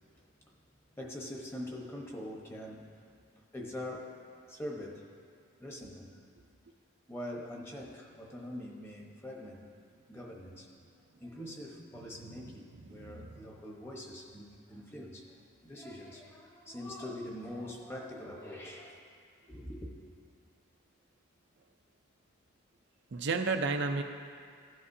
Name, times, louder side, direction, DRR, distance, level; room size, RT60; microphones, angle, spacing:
voice 1, 1.0-2.9 3.5-4.2 4.5-5.0 5.6-6.2 7.1-9.7 10.1-10.7 11.2-15.3 15.6-19.0 19.5-19.9, left 1 dB, 10° left, -1 dB, 1.0 m, -43 dB
voice 2, 12.9-13.3 23.1-24.0, right 4 dB, 55° right, 5 dB, 0.5 m, -32 dB
16.0 x 11.0 x 2.7 m, 2.2 s
head